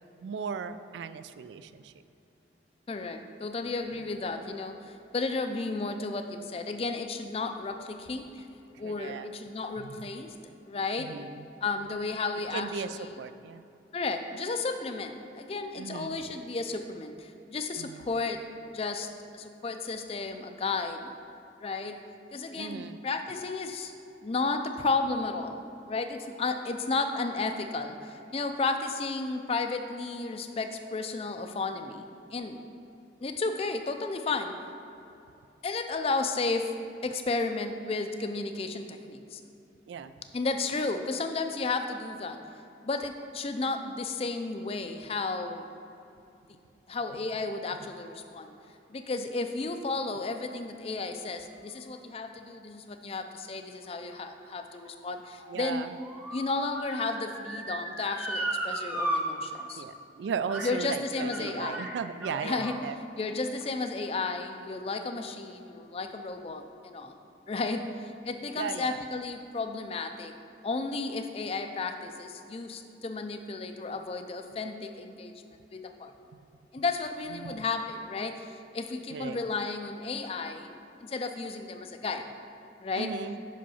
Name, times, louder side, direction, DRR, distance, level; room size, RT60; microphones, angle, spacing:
voice 1, 0.2-1.9 4.0-4.1 8.8-9.3 9.8-10.1 11.0-11.5 12.5-13.6 15.8-16.4 17.8-18.1 22.5-23.0 39.9-40.1 55.5-56.0 59.8-63.0 68.5-69.0 77.3-77.6 79.1-79.4 83.0-83.4, right 6 dB, 80° right, 12 dB, 0.3 m, -37 dB
voice 2, 2.9-8.5 8.8-11.1 11.6-13.3 13.9-18.4 18.7-19.1 19.3-21.2 21.6-22.0 22.3-23.9 24.2-32.6 33.2-34.5 35.6-36.7 37.0-39.4 40.3-42.4 42.8-45.7 46.9-48.5 48.9-55.9 56.3-59.8 60.6-61.9 62.4-67.1 67.5-70.3 70.6-75.4 75.7-76.1 76.7-80.7 81.0-82.3 82.8-83.2, left 3 dB, 30° left, 6 dB, 0.4 m, -33 dB
Motor vehicle (road) / Siren, 54.0-59.2 59.5-59.6 60.5-60.8 61.2-62.8 63.5-63.6, right 1 dB, 5° right, 0.6 m, -36 dB
5.6 x 5.1 x 5.6 m, 2.7 s
head